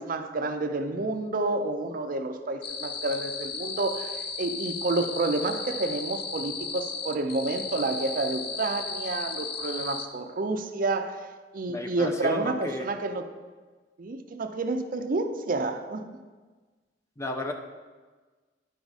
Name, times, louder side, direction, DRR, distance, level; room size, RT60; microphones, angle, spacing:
voice 1, 0.0-11.3 11.5-13.3 14.0-16.0, right 2 dB, 50° right, 7 dB, 0.5 m, -29 dB
sound 1, 2.6-10.1, left 5 dB, 60° left, 0.6 m, -35 dB
voice 2, 11.7-12.9 17.2-17.5, left 1 dB, 15° left, 4 dB, 0.6 m, -33 dB
10.5 x 4.7 x 4.0 m, 1.3 s
head